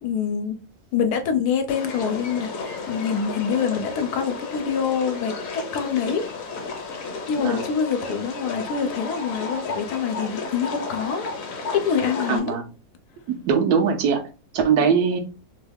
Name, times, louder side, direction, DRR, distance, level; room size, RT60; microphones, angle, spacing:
voice 1, 0.0-0.6 0.9-6.2 7.3-11.3 11.7-12.6, left 7 dB, 90° left, 1.1 m, -25 dB
sound 1, 1.7-12.4, left 3 dB, 65° left, 1.1 m, -33 dB
voice 2, 12.3-12.6 13.3-14.3 14.5-15.2, right 6 dB, 85° right, 1.2 m, -21 dB
3.1 x 2.3 x 3.4 m
omnidirectional pair, 1.6 m